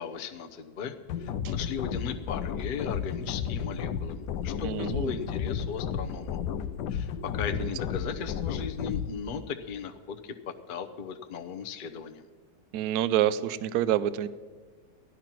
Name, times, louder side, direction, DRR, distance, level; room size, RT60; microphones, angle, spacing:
voice 1, 0.0-6.4 6.9-12.3, left 6 dB, 45° left, 5 dB, 0.7 m, -37 dB
sound 1, 1.1-9.1, left 8 dB, 75° left, 1.2 m, -33 dB
voice 2, 4.6-5.2 7.6-7.7 12.7-14.3, right 11 dB, 70° right, 16 dB, 1.0 m, -27 dB
14.0 x 11.0 x 5.9 m, 1.4 s
omnidirectional pair, 1.9 m